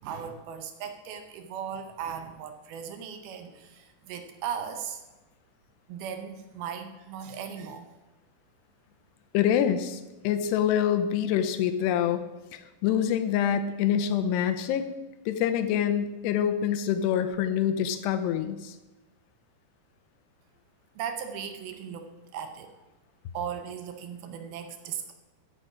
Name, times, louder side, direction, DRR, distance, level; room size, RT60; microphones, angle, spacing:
voice 1, 0.0-5.0 5.9-7.9 21.0-22.7 23.3-25.1, right 8 dB, 75° right, 7 dB, 2.4 m, -37 dB
voice 2, 9.3-12.2 12.5-14.8 15.3-18.8, left 9 dB, 80° left, 9 dB, 2.7 m, -26 dB
14.0 x 6.5 x 5.0 m, 1.1 s
omnidirectional pair, 5.0 m